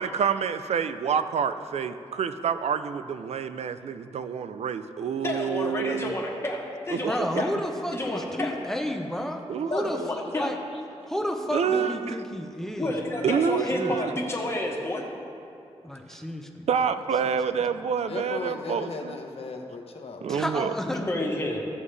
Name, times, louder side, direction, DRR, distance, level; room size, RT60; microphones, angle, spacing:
voice 1, 0.0-6.2 6.9-7.0 7.3-7.4 9.5-10.1 11.5-12.2 13.2-14.1 16.7-19.2 20.2-20.7, right 7 dB, 80° right, 11 dB, 0.4 m, -28 dB
voice 2, 5.2-7.5 7.9-8.5 9.7-10.5 12.8-15.0 20.8-21.6, left 1 dB, 25° left, -2 dB, 1.3 m, -30 dB
voice 3, 7.0-9.4 9.7-10.6 11.1-13.2 13.7-14.0 15.8-16.7 17.2-17.3 20.2-21.1, equal, 5° left, 4 dB, 0.7 m, -32 dB
voice 4, 18.1-20.4, left 4 dB, 65° left, 3 dB, 1.0 m, -37 dB
14.5 x 7.1 x 3.3 m, 2.7 s
wide cardioid pair, 115°, 11 cm